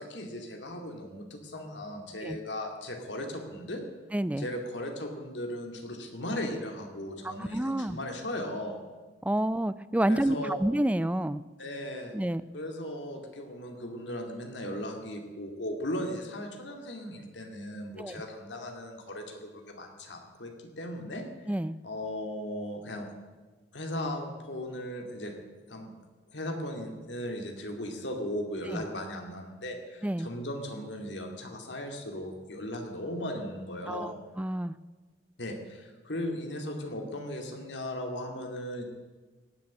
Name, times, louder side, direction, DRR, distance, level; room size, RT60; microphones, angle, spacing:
voice 1, 0.0-3.8 4.4-8.8 10.0-10.6 11.6-12.1 12.5-20.5 20.8-21.2 21.8-23.1 23.7-25.3 25.7-25.9 26.3-34.1 35.4-38.8, left 1 dB, 85° left, 3 dB, 2.5 m, -37 dB
voice 2, 4.1-4.5 7.2-8.0 9.2-11.4 12.1-12.4 18.0-18.2 21.5-21.8 28.7-28.8 30.0-30.3 33.9-34.8, right 1 dB, 10° right, 16 dB, 0.4 m, -29 dB
17.0 x 7.1 x 9.6 m, 1.3 s
head